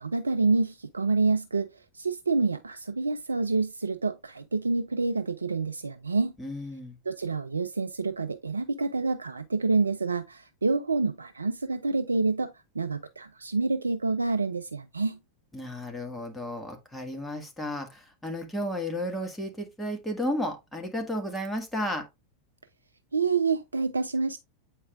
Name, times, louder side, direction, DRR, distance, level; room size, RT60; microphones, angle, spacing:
voice 1, 0.0-6.3 7.1-15.2 23.1-24.4, right 3 dB, 75° right, 0.4 m, -27 dB
voice 2, 6.4-7.0 15.5-22.0, left 1 dB, 5° left, 1.7 m, -33 dB
8.1 x 4.8 x 2.4 m
figure-of-eight pair, 90°, 0 cm